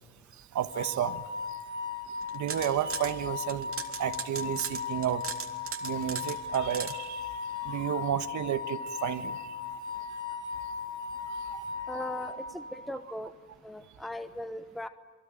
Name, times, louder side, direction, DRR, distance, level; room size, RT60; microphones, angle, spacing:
voice 1, 0.5-1.2 2.3-3.7 4.0-5.2 5.8-7.3 7.6-9.4 11.5-11.6, right 10 dB, 70° right, 11 dB, 1.4 m, -31 dB
sound 1, 0.7-12.9, left 5 dB, 25° right, 3.1 m, -37 dB
sound 2, 2.2-3.1 3.5-6.9, right 6 dB, 45° right, 2.9 m, -38 dB
voice 2, 11.9-13.3 13.6-14.9, left 1 dB, ahead, 9 dB, 1.1 m, -38 dB
29.0 x 22.5 x 9.0 m, 1.3 s
cardioid pair, 90°, 30 cm